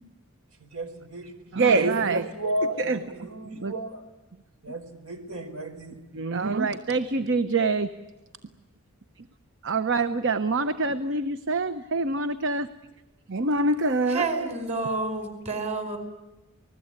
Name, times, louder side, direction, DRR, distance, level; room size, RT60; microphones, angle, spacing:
voice 1, 0.6-4.0 4.6-6.0, right 1 dB, 75° right, 8 dB, 4.4 m, -34 dB
voice 2, 1.5-2.3 2.8-3.1 3.5-3.8 6.1-7.9 9.6-12.7 13.3-14.3, right 3 dB, 55° right, 11 dB, 1.0 m, -25 dB
voice 3, 14.1-16.0, right 3 dB, 30° right, 7 dB, 5.0 m, -29 dB
29.0 x 20.0 x 9.7 m, 1.1 s
head